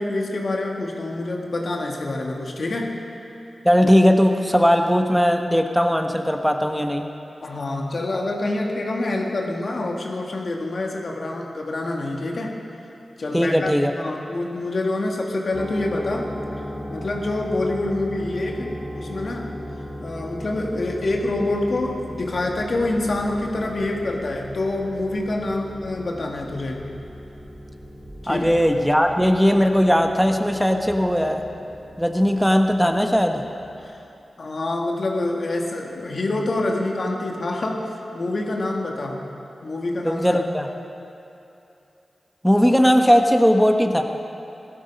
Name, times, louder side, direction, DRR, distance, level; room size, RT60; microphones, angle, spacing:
voice 1, 0.0-2.9 7.4-12.5 13.2-16.3 16.9-19.6 20.0-26.8 28.2-28.5 33.8-34.0 34.4-39.3 39.6-40.4, left 2 dB, 65° left, 0 dB, 1.9 m, -26 dB
voice 2, 3.6-7.0 13.3-13.9 28.3-31.4 32.0-33.4 40.0-40.7 42.4-44.0, equal, ahead, 4 dB, 1.3 m, -18 dB
sound 1, 15.5-33.9, equal, 35° right, 2.6 m, -37 dB
17.0 x 12.5 x 5.4 m, 2.8 s
cardioid pair, 40°, 0 cm